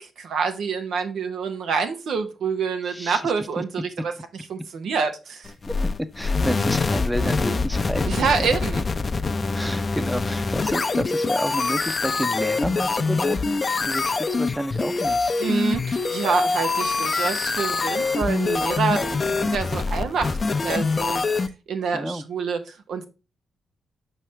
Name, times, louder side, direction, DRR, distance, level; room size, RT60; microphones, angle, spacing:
voice 1, 0.0-4.1 4.5-5.5 8.1-8.9 15.4-20.4 20.6-21.3 21.7-23.0, right 5 dB, 70° right, 1.0 m, -27 dB
voice 2, 2.9-3.6 5.7-5.8 6.1-8.1 9.5-15.3 21.9-22.2, equal, 5° right, 0.8 m, -30 dB
sound 1, 5.4-21.5, left 4 dB, 40° left, 0.6 m, -24 dB
6.1 x 5.4 x 3.4 m
hypercardioid pair, 45°, 0 cm